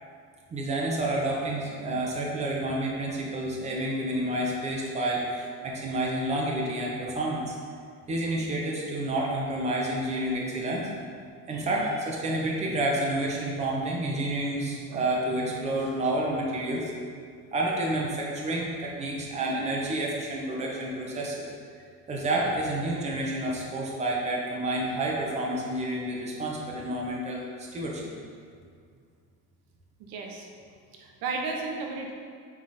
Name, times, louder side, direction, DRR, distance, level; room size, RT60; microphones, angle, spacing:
voice 1, 0.5-7.6 8.1-10.9 11.5-16.9 17.5-21.5 22.1-28.1, right 1 dB, 20° right, -3 dB, 0.8 m, -29 dB
voice 2, 30.0-30.5 30.9-32.1, right 3 dB, 85° right, 1 dB, 1.1 m, -34 dB
7.9 x 3.6 x 4.2 m, 2.2 s
cardioid pair, 170°, 34 cm